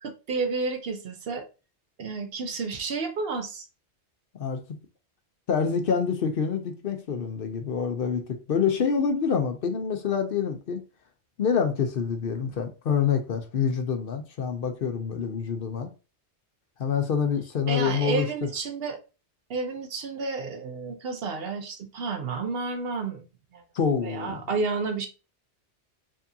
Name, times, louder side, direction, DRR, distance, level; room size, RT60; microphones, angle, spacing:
voice 1, 0.0-1.5 2.0-3.6 17.7-19.0 19.5-23.6 24.0-25.1, right 4 dB, 60° right, 0.9 m, -31 dB
voice 2, 5.5-10.8 11.4-15.9 16.8-18.3 23.7-24.4, left 6 dB, 60° left, 0.7 m, -26 dB
4.7 x 2.7 x 2.7 m
omnidirectional pair, 1.2 m